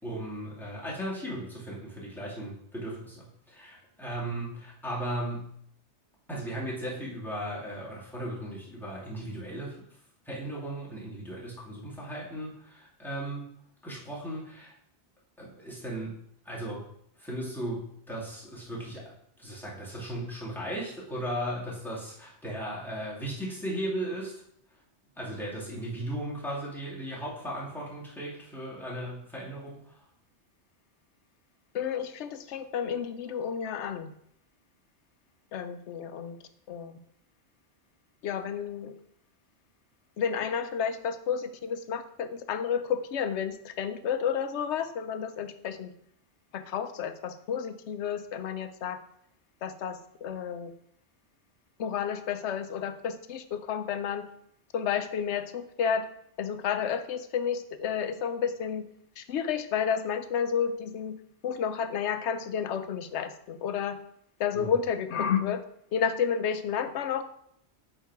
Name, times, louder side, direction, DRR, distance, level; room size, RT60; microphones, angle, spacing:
voice 1, 0.0-5.6 6.3-9.8 10.3-13.4 13.8-14.7 15.4-16.9 17.2-24.3 25.2-30.0 64.5-64.7, right 1 dB, ahead, -6 dB, 2.1 m, -36 dB
voice 2, 31.7-34.1 35.5-36.4 36.7-37.0 38.2-38.9 40.2-45.9 46.5-49.0 49.6-50.7 51.8-54.3 54.7-56.1 56.4-58.9 59.2-64.0 64.4-65.6 65.9-67.2, left 7 dB, 85° left, 10 dB, 0.9 m, -31 dB
8.2 x 3.7 x 4.7 m, 0.71 s
omnidirectional pair, 1.1 m